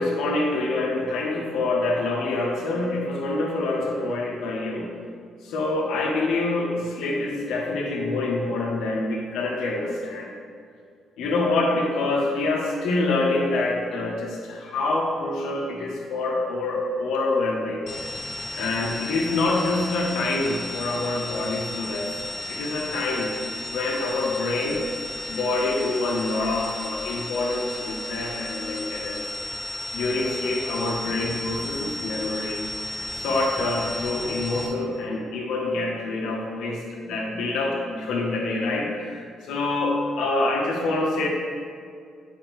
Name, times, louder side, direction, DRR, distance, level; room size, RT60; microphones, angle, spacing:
voice 1, 0.0-4.9 5.4-10.3 11.2-17.9 18.5-22.2 22.5-23.3 23.7-24.8 25.3-29.2 29.9-32.6 33.1-41.3, left 2 dB, 90° left, -1 dB, 1.2 m, -26 dB
sound 1, 17.9-34.7, left 1 dB, 55° left, 0.8 m, -34 dB
8.3 x 5.6 x 3.1 m, 2.2 s
cardioid pair, 90°, 0 cm